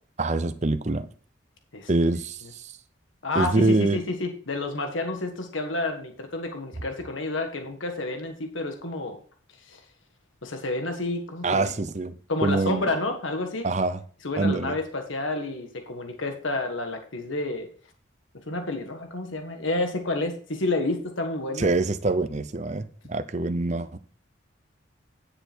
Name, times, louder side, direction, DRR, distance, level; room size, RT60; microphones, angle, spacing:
voice 1, 0.2-1.1 1.9-2.7 3.4-4.0 11.4-12.1 12.4-12.9 13.6-14.0 14.4-14.8 21.6-24.0, right 2 dB, 35° right, 0.6 m, -25 dB
voice 2, 3.2-9.2 9.7-9.8 10.4-11.6 12.3-13.7 14.2-17.7 18.5-21.7, left 2 dB, 90° left, 1.6 m, -29 dB
10.0 x 6.8 x 4.5 m
head